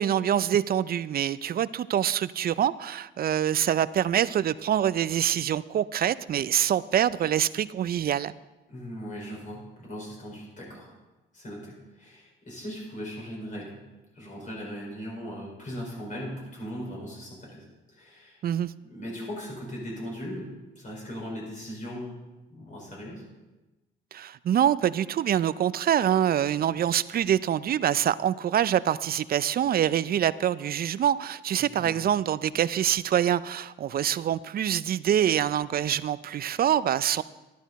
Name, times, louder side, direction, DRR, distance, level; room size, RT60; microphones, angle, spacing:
voice 1, 0.0-8.3 18.4-18.7 24.1-37.2, right 10 dB, 50° right, 17 dB, 0.4 m, -25 dB
voice 2, 8.7-10.9 11.3-13.8 14.1-18.4 18.8-22.2 22.5-23.2 31.6-32.0, equal, 40° left, -3 dB, 4.9 m, -39 dB
11.5 x 11.5 x 4.1 m, 1.1 s
cardioid pair, 90°, 20 cm